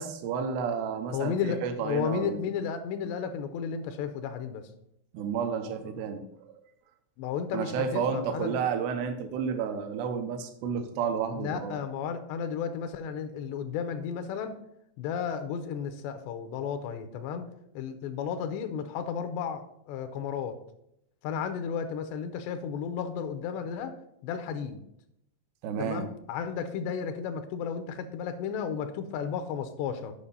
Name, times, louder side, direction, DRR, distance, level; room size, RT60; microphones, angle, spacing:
voice 1, 0.0-2.4 5.1-6.2 7.5-11.8 25.6-26.1, right 6 dB, 75° right, 7 dB, 2.9 m, -31 dB
voice 2, 1.1-4.6 7.2-8.6 11.4-14.6 15.0-17.5 17.7-20.6 21.2-24.0 24.2-24.8 25.8-30.1, left 7 dB, 85° left, 8 dB, 2.8 m, -33 dB
8.6 x 5.7 x 5.4 m, 0.78 s
omnidirectional pair, 5.0 m